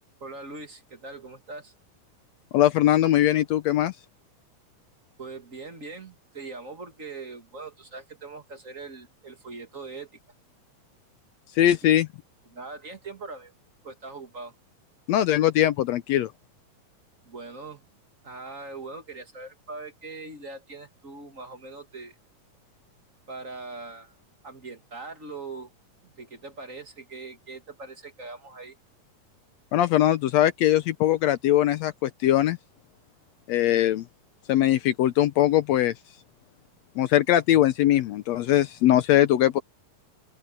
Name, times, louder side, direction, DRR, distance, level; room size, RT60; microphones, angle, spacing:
voice 1, 0.2-1.7 5.2-10.1 12.4-13.5 13.8-14.5 17.2-17.8 18.2-22.1 23.3-24.1 24.4-25.7 26.0-28.7, right 3 dB, 30° right, 1.6 m, -41 dB
voice 2, 2.5-3.9 11.6-12.1 15.1-16.3 29.7-32.6 33.5-34.0 34.5-35.9 37.0-39.6, left 12 dB, 75° left, 1.6 m, -21 dB
open air
omnidirectional pair, 3.8 m